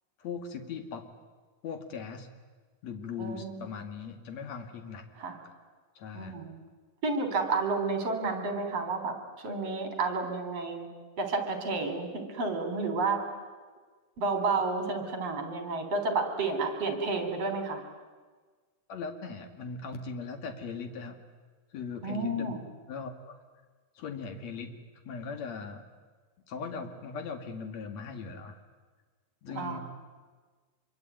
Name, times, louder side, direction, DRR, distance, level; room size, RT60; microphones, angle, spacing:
voice 1, 0.2-1.1 1.6-2.3 2.8-5.1 6.0-6.4 18.9-21.2 21.7-22.5 22.9-23.4 23.9-24.7 25.0-25.8 26.5-28.6 29.4-29.8, left 5 dB, 60° left, 6 dB, 3.3 m, -39 dB
voice 2, 3.2-3.7 5.2-5.4 6.1-6.6 7.0-10.9 11.2-13.2 14.2-17.8 22.0-22.6 29.5-29.8, right 3 dB, 50° right, 6 dB, 4.6 m, -31 dB
26.0 x 23.5 x 9.4 m, 1.4 s
omnidirectional pair, 3.6 m